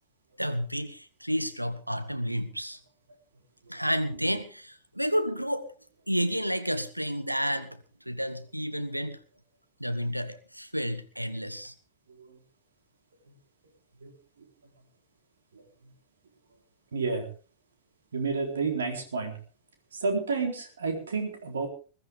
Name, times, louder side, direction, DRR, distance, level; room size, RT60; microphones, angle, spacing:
voice 1, 0.4-2.8 3.7-5.7 6.1-7.8 8.1-9.2 9.8-11.7, equal, 90° right, 10 dB, 1.4 m, -30 dB
voice 2, 16.9-17.3 18.1-19.4 20.0-21.7, right 4 dB, 70° right, 4 dB, 4.0 m, -30 dB
21.5 x 13.5 x 3.7 m, 0.36 s
figure-of-eight pair, 90°, 0 cm